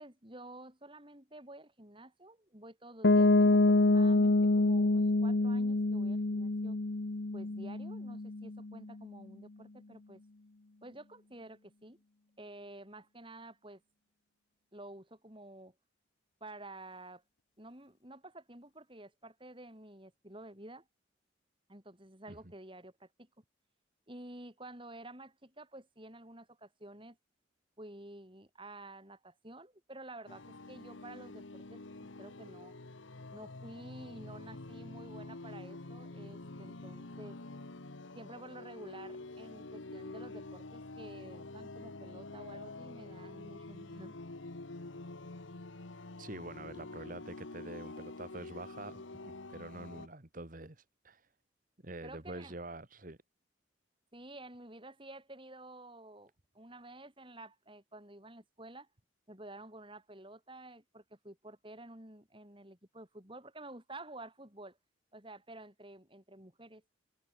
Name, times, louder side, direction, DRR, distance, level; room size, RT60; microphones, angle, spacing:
voice 1, 0.0-6.8 7.3-10.2 10.8-12.0 12.4-13.8 14.7-15.7 16.4-17.2 17.6-20.9 21.7-23.3 24.1-27.2 27.8-32.7 33.3-37.4 38.2-44.2 52.0-52.5 54.1-58.9 59.3-64.8 65.1-66.8, right 1 dB, 25° right, 6.0 m, -51 dB
Piano, 3.0-8.7, left 2 dB, 65° left, 0.9 m, -27 dB
sound 1, 30.3-50.1, left 2 dB, 90° left, 1.4 m, -47 dB
voice 2, 46.2-51.3 51.8-53.2, right 2 dB, 45° right, 1.9 m, -46 dB
head